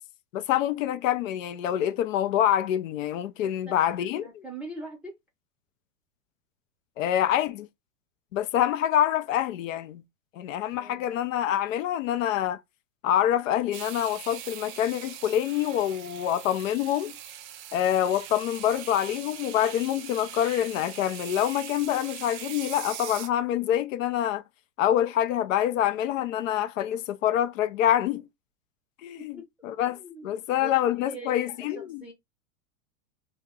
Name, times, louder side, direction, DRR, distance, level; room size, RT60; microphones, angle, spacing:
voice 1, 0.3-4.4 7.0-7.7 8.3-10.0 10.3-12.6 13.0-17.1 17.7-24.4 24.8-28.3 29.0-32.0, left 11 dB, 80° left, 0.5 m, -26 dB
voice 2, 3.4-3.8 4.2-5.1 10.7-11.1 29.2-29.7 30.0-30.7 31.0-32.1, right 1 dB, 5° right, 0.5 m, -42 dB
sound 1, 13.7-23.3, right 11 dB, 50° right, 0.6 m, -41 dB
2.8 x 2.1 x 3.5 m
hypercardioid pair, 115°, 39 cm